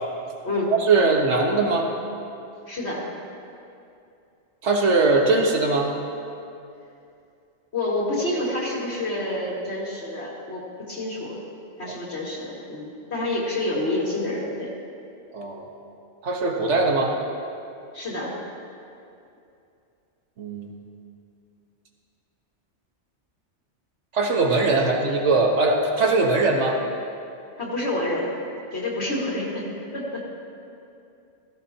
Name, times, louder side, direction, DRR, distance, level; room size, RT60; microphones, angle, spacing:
voice 1, 0.7-1.9 4.6-5.9 15.3-15.7 16.2-17.1 20.4-20.7 24.1-26.8, right 3 dB, 80° right, 2 dB, 1.6 m, -21 dB
voice 2, 2.7-3.1 7.7-11.4 11.8-14.7 17.9-18.4 27.6-28.3 28.7-29.7 29.9-30.2, left 1 dB, 65° left, -4 dB, 2.3 m, -28 dB
17.0 x 14.5 x 2.9 m, 2.6 s
omnidirectional pair, 1.2 m